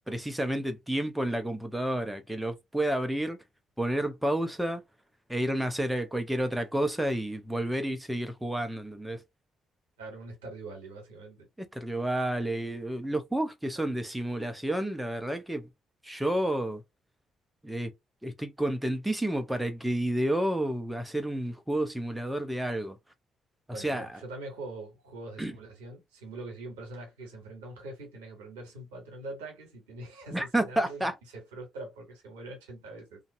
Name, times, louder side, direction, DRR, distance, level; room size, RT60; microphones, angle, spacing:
voice 1, 0.1-3.4 3.8-4.8 5.3-9.2 11.7-15.7 16.0-16.8 17.6-17.9 18.2-23.0 23.8-24.1 25.4-25.5 30.3-31.1, right 1 dB, 5° right, 0.6 m, -30 dB
voice 2, 10.0-11.5 23.7-33.2, right 2 dB, 75° right, 1.0 m, -43 dB
2.6 x 2.3 x 2.5 m
figure-of-eight pair, 40°, 0 cm